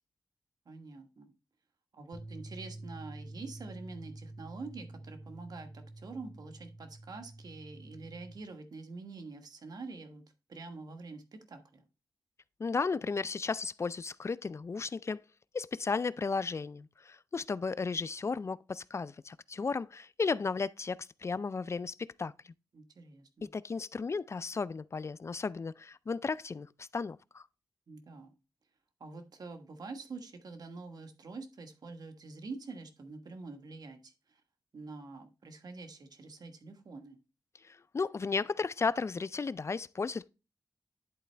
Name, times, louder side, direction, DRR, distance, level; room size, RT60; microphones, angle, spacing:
voice 1, 0.6-1.3 1.9-10.2 10.5-11.8 22.7-23.5 27.9-28.4 29.0-34.4 34.7-37.2, right 3 dB, 65° right, 1.3 m, -46 dB
sound 1, 2.1-8.4, right 1 dB, 15° left, 2.3 m, -48 dB
voice 2, 12.6-15.2 15.5-22.3 23.5-27.5 37.6-40.3, left 4 dB, 40° left, 0.3 m, -34 dB
10.5 x 4.2 x 3.3 m
cardioid pair, 75°, 7 cm